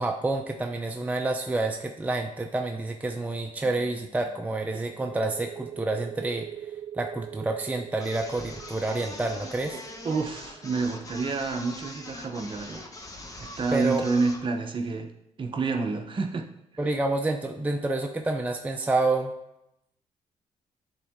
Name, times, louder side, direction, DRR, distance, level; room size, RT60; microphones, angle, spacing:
voice 1, 0.0-6.5 6.9-9.8 13.7-14.1 16.8-19.3, right 2 dB, 10° right, 3 dB, 0.5 m, -28 dB
sound 1, 3.6-7.0, left 5 dB, 70° left, 1.3 m, -58 dB
sound 2, 4.9-12.3, right 10 dB, 65° right, 0.5 m, -43 dB
sound 3, 8.0-14.5, left 2 dB, 25° left, 0.9 m, -42 dB
voice 2, 9.7-12.8 13.4-15.1 15.4-16.4, right 4 dB, 40° right, 4 dB, 0.8 m, -29 dB
10.0 x 3.7 x 3.6 m, 0.84 s
cardioid pair, 105°, 13 cm